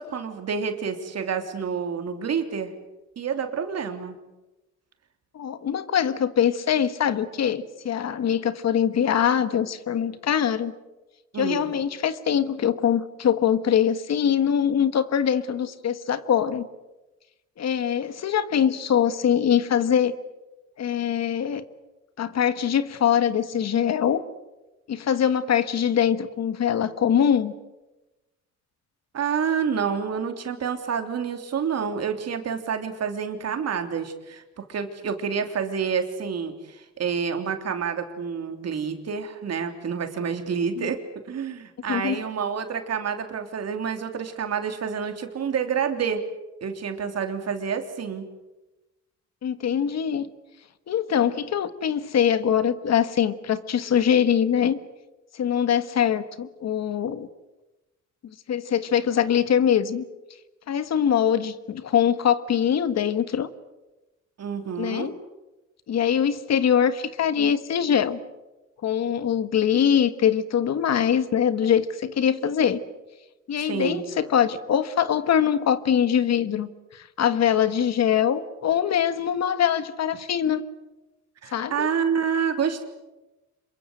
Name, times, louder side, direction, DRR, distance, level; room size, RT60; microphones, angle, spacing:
voice 1, 0.0-2.7 3.2-4.2 11.3-11.7 29.1-41.0 41.3-46.2 46.6-48.3 64.4-65.1 73.6-74.0 81.4-82.8, right 6 dB, 55° right, 6 dB, 3.3 m, -28 dB
voice 2, 5.3-10.7 11.4-16.7 17.6-20.1 20.8-21.6 22.2-24.2 24.9-27.5 40.8-40.9 41.9-42.2 49.4-50.3 50.9-54.8 55.3-57.3 58.5-60.0 60.7-63.5 64.8-65.1 65.9-68.2 68.8-72.8 73.5-80.6 81.5-81.9, left 8 dB, 60° left, 12 dB, 1.6 m, -23 dB
26.5 x 22.5 x 8.1 m, 1.1 s
cardioid pair, 90°, 30 cm